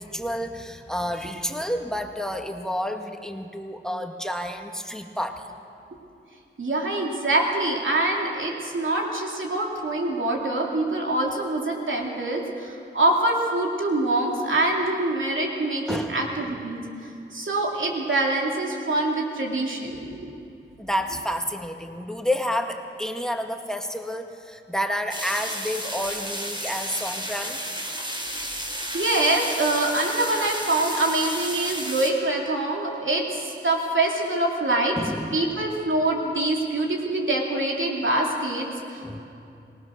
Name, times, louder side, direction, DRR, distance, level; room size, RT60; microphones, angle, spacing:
voice 1, 0.0-5.4 15.9-16.3 20.8-27.6 35.0-35.5 39.0-39.2, equal, 5° left, 4 dB, 1.8 m, -30 dB
voice 2, 6.6-16.8 17.3-20.4 28.3-28.4 28.9-35.0 35.3-39.0, right 2 dB, 70° right, -1 dB, 3.1 m, -25 dB
sound 1, 25.1-32.1, equal, 20° right, 3.9 m, -32 dB
26.0 x 18.5 x 6.6 m, 2.7 s
wide cardioid pair, 65°, 21 cm